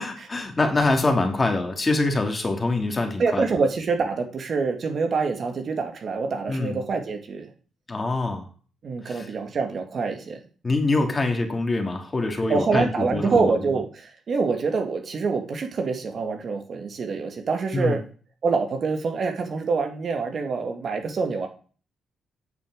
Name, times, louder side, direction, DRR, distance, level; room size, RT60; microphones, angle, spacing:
voice 1, 0.0-3.5 6.5-6.8 7.9-8.5 9.0-9.3 10.6-13.6 17.7-18.0, left 2 dB, 25° left, 4 dB, 2.8 m, -24 dB
voice 2, 3.2-7.5 8.8-10.4 12.5-18.0 18.4-21.5, right 4 dB, 50° right, 5 dB, 2.2 m, -26 dB
9.0 x 6.9 x 7.9 m, 0.40 s
cardioid pair, 90°, 0 cm